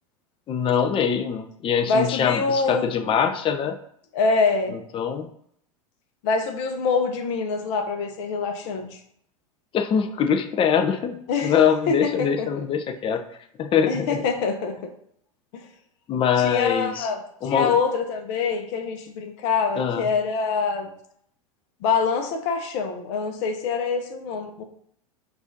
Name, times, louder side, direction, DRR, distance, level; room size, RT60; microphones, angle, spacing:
voice 1, 0.5-3.8 4.7-5.3 9.7-13.2 13.6-14.2 16.1-17.1 17.4-17.7 19.8-20.1, left 7 dB, 30° left, 7 dB, 0.5 m, -23 dB
voice 2, 1.9-2.9 4.1-4.8 6.2-9.0 11.3-11.5 11.9-12.6 13.9-14.8 15.5-15.7 16.4-20.9 21.8-24.6, left 4 dB, 60° left, 5 dB, 0.9 m, -25 dB
4.7 x 2.6 x 3.9 m, 0.68 s
hypercardioid pair, 90°, 18 cm